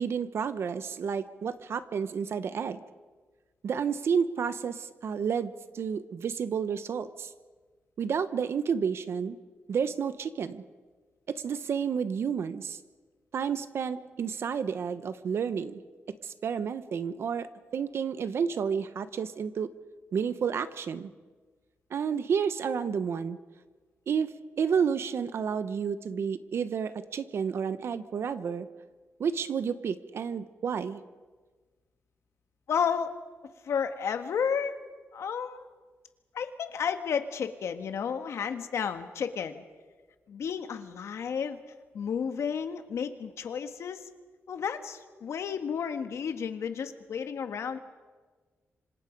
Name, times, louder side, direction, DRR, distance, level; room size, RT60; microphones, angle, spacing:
voice 1, 0.0-2.8 3.6-7.3 8.0-9.4 9.7-10.6 11.3-12.8 13.3-15.8 16.2-17.5 17.7-19.7 20.1-21.1 21.9-23.4 24.1-28.7 29.2-31.0, right 6 dB, 60° right, 12 dB, 0.9 m, -30 dB
voice 2, 32.7-33.1 33.6-34.7 35.1-35.6 36.3-39.6 40.3-41.6 41.9-44.1 44.5-47.8, left 7 dB, 80° left, 8 dB, 1.7 m, -32 dB
26.0 x 26.0 x 5.3 m, 1.4 s
wide cardioid pair, 175°, 5 cm